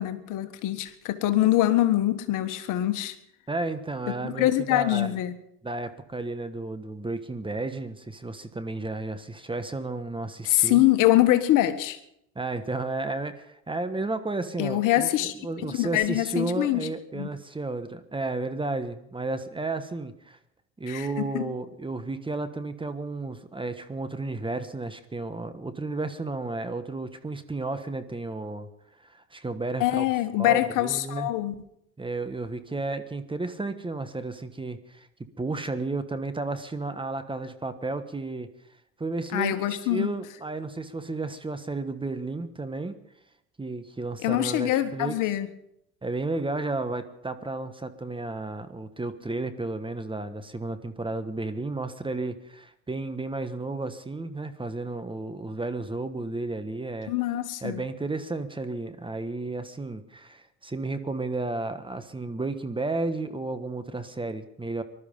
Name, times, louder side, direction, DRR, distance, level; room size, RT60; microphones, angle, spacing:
voice 1, 0.0-3.1 4.1-5.3 10.4-12.0 14.6-15.3 15.6-16.9 17.1-17.3 20.9-21.5 29.8-31.5 39.3-40.1 44.2-45.5 57.1-57.8, left 14 dB, 65° left, 9 dB, 1.5 m, -24 dB
voice 2, 3.5-5.1 5.6-10.8 12.3-20.4 20.8-28.7 29.0-30.0 30.4-31.3 32.0-35.1 35.4-38.5 39.0-43.0 43.6-45.1 46.0-57.1 57.6-64.8, right 2 dB, 15° right, 10 dB, 1.4 m, -32 dB
20.0 x 12.5 x 5.4 m, 0.76 s
hypercardioid pair, 75°, 34 cm